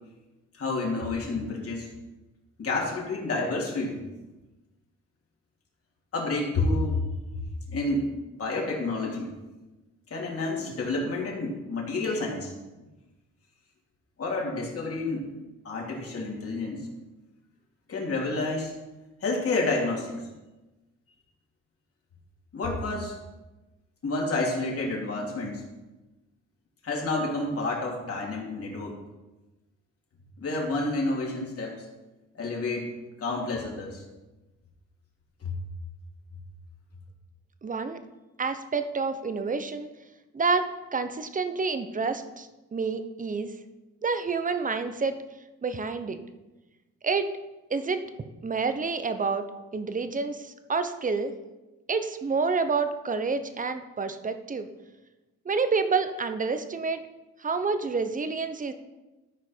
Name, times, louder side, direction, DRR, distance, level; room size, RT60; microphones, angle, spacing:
voice 1, 0.6-1.9 2.6-4.0 6.1-7.1 7.7-9.3 10.1-12.5 14.2-15.3 15.6-16.9 17.9-18.7 19.2-20.1 22.5-23.2 24.0-25.6 26.8-28.9 30.4-31.8 32.3-32.9 33.2-34.0 35.4-35.5, left 2 dB, 50° left, -2 dB, 2.9 m, -29 dB
voice 2, 37.6-38.0 38.4-39.9 40.3-43.5 44.0-45.2 45.6-46.2 47.0-47.3 47.7-48.1 48.4-49.5 49.7-51.3 51.9-54.7 55.4-57.0 57.4-58.7, right 4 dB, 25° right, 10 dB, 0.8 m, -28 dB
13.5 x 5.1 x 4.5 m, 1.1 s
cardioid pair, 90°, 30 cm